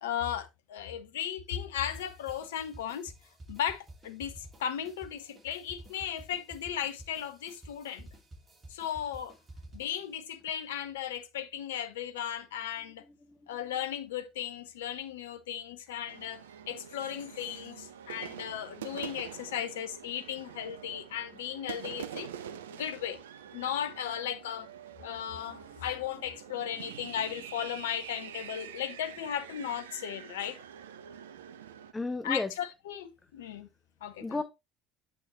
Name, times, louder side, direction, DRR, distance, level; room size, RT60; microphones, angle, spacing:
voice 1, 0.0-3.1 3.5-8.1 8.7-9.4 9.7-13.0 13.5-22.3 22.7-23.2 23.5-24.7 25.0-30.6 32.2-33.7 34.0-34.4, left 9 dB, 70° left, 0.7 m, -36 dB
sound 1, 1.9-10.1, right 1 dB, 25° right, 2.6 m, -51 dB
sound 2, 16.1-31.9, right 9 dB, 75° right, 0.4 m, -46 dB
voice 2, 31.9-32.6 34.2-34.4, left 3 dB, 15° left, 0.7 m, -35 dB
8.1 x 5.2 x 3.1 m
figure-of-eight pair, 60°, 0 cm